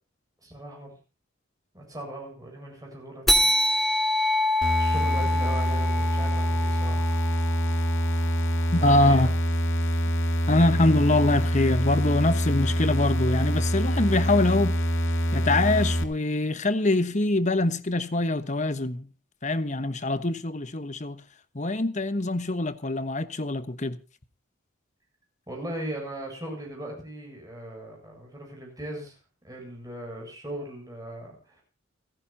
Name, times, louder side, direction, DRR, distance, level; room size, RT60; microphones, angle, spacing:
voice 1, 0.4-1.0 1.7-3.5 3.9-4.0 4.4-7.3 8.8-9.4 25.5-29.2 29.4-31.6, right 1 dB, 15° right, 7.8 m, -39 dB
sound 1, 3.3-8.2, left 1 dB, ahead, 2.4 m, -26 dB
sound 2, 4.6-16.0, equal, 65° left, 2.5 m, -25 dB
voice 2, 8.7-9.3 10.5-14.8 15.3-19.1 19.4-21.2 21.5-24.0, left 2 dB, 35° left, 1.2 m, -24 dB
30.0 x 10.5 x 2.8 m
head